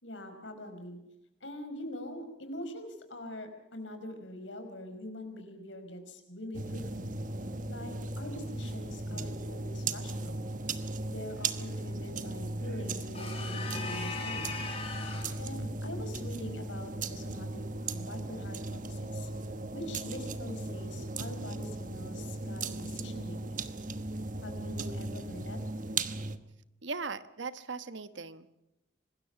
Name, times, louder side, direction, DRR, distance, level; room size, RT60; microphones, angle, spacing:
voice 1, 0.0-1.0 1.4-7.1 7.7-10.4 11.1-14.5 15.4-19.3 19.7-23.6 24.4-25.6, left 1 dB, 90° left, 7 dB, 5.0 m, -44 dB
sound 1, 6.5-26.4, right 2 dB, 45° right, 1.2 m, -37 dB
sound 2, 13.1-15.4, left 4 dB, 30° left, 5.0 m, -39 dB
voice 2, 26.8-28.5, right 4 dB, 80° right, 13 dB, 1.2 m, -39 dB
26.0 x 20.5 x 5.9 m, 0.91 s
head